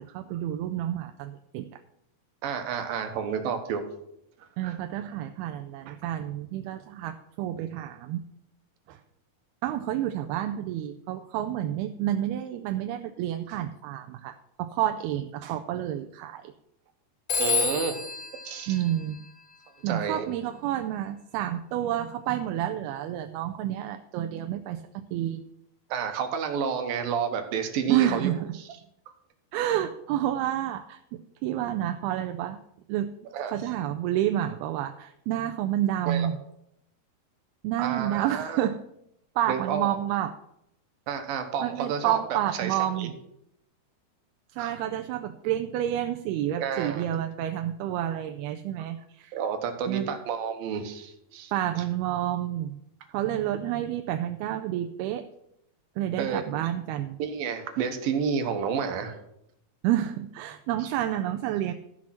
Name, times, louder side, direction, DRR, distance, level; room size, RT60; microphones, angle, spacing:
voice 1, 0.0-1.7 4.6-8.2 8.9-9.0 9.6-16.5 18.7-19.2 19.8-25.4 27.9-28.5 29.5-32.6 32.9-33.1 33.5-36.4 37.6-38.8 39.4-40.4 41.6-43.1 44.5-49.4 49.9-50.1 51.5-52.8 53.1-55.3 56.0-57.2 59.8-61.7, right 12 dB, 90° right, 7 dB, 2.5 m, -29 dB
voice 2, 2.4-3.8 4.6-4.8 17.4-18.0 18.5-18.8 19.9-20.3 25.9-28.3 33.3-33.5 36.1-36.3 37.8-38.6 39.5-40.0 41.1-43.1 44.6-44.7 46.6-47.1 49.3-51.5 56.2-56.4 57.2-59.2, right 7 dB, 70° right, 6 dB, 2.8 m, -30 dB
Telephone, 17.3-19.8, left 5 dB, 60° left, 1.3 m, -30 dB
13.5 x 6.3 x 5.9 m, 0.78 s
omnidirectional pair, 4.4 m